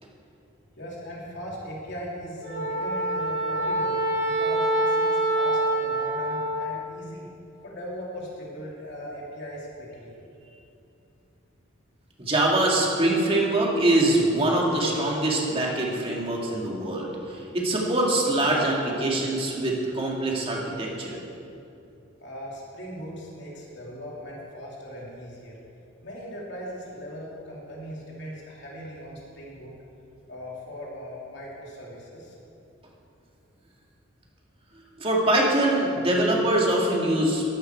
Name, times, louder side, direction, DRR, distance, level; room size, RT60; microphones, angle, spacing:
voice 1, 0.7-7.3 7.6-10.2 22.2-25.6 26.0-29.7 30.3-32.3, equal, 60° left, -4 dB, 3.1 m, -39 dB
Wind instrument woodwind instrument, 2.4-6.8, right 1 dB, 55° right, 3.3 m, -25 dB
voice 2, 12.2-21.2 35.0-37.4, right 1 dB, 30° right, -2 dB, 2.1 m, -23 dB
14.0 x 11.5 x 4.6 m, 2.7 s
head